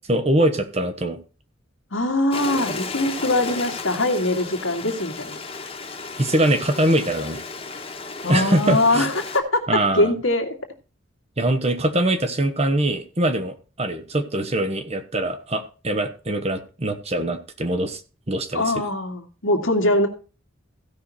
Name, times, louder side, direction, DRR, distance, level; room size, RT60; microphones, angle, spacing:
voice 1, 0.1-1.2 6.2-7.4 8.3-9.1 9.7-10.1 11.4-18.0 18.3-18.6, right 1 dB, 30° right, 8 dB, 1.2 m, -23 dB
voice 2, 1.9-5.4 8.2-10.5 18.5-20.1, left 1 dB, 75° left, 4 dB, 2.2 m, -22 dB
Stream, 2.3-9.4, left 4 dB, 30° left, 1.5 m, -34 dB
15.5 x 5.8 x 4.2 m, 0.34 s
head